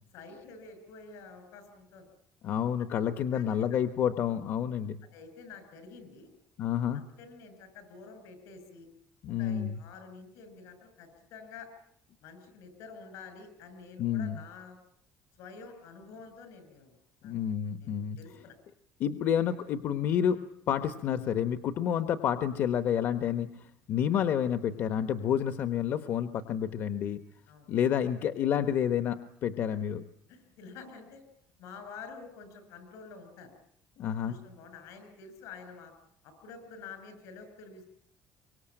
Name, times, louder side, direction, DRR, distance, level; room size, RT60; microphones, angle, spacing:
voice 1, 0.1-2.1 2.5-2.6 2.9-3.8 5.1-6.3 6.9-8.9 9.3-11.7 12.2-14.8 15.4-17.3 17.8-18.6 24.1-24.2 27.5-27.7 30.3-31.2 31.6-33.5 34.1-35.9 36.2-37.8, left 5 dB, 80° left, 9 dB, 7.4 m, -49 dB
voice 2, 2.4-5.0 6.6-7.0 9.2-9.8 14.0-14.4 17.2-18.2 19.0-27.2 27.7-30.0 34.0-34.3, left 9 dB, 50° left, 10 dB, 1.1 m, -29 dB
24.5 x 24.0 x 8.9 m, 0.68 s
cardioid pair, 180°, 5 cm